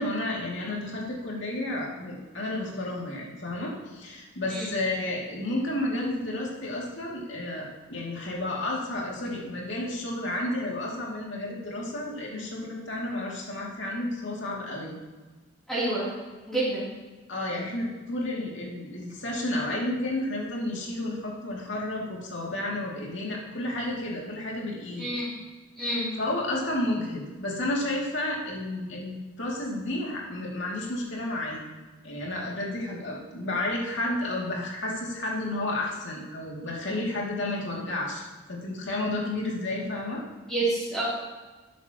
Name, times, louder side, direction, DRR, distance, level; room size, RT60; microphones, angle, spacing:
voice 1, 0.0-15.0 17.3-25.0 26.2-31.6 32.0-38.2 38.5-40.2, left 1 dB, 70° left, -3 dB, 2.6 m, -31 dB
voice 2, 15.7-16.1 16.5-16.9 25.0-25.3 25.7-26.1 40.5-41.0, right 2 dB, 5° left, -12 dB, 3.2 m, -28 dB
12.5 x 10.0 x 3.0 m, 1.3 s
head